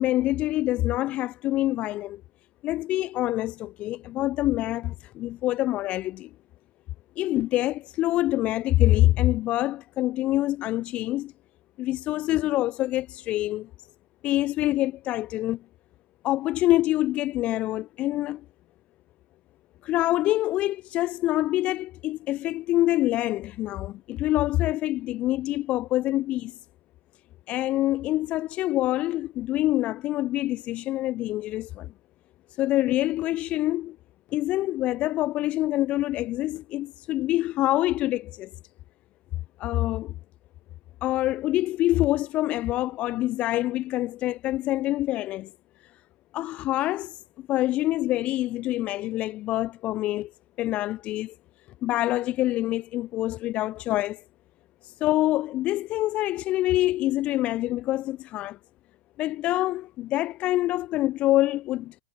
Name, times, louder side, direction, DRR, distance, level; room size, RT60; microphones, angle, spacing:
voice 1, 0.0-2.2 2.6-6.3 7.2-11.3 11.8-13.7 14.2-15.6 16.2-18.4 19.8-26.6 27.5-31.9 32.6-34.0 34.3-38.5 39.6-40.1 41.0-45.5 46.3-50.3 50.6-51.3 51.8-54.2 54.8-58.6 59.2-61.9, left 15 dB, 30° left, 0.6 m, -26 dB
figure-of-eight pair, 100°, 4 cm